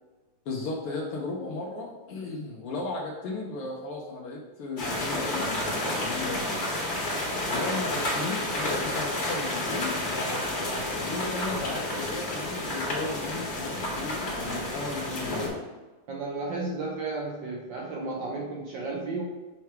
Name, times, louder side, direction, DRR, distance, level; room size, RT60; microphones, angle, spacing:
voice 1, 0.4-6.7 7.5-15.5, left 2 dB, 85° left, -2 dB, 1.7 m, -35 dB
sound 1, 4.8-15.5, left 1 dB, 45° left, 2.2 m, -30 dB
voice 2, 16.1-19.2, right 3 dB, 65° right, -3 dB, 1.3 m, -33 dB
6.9 x 3.3 x 4.5 m, 1.2 s
omnidirectional pair, 2.4 m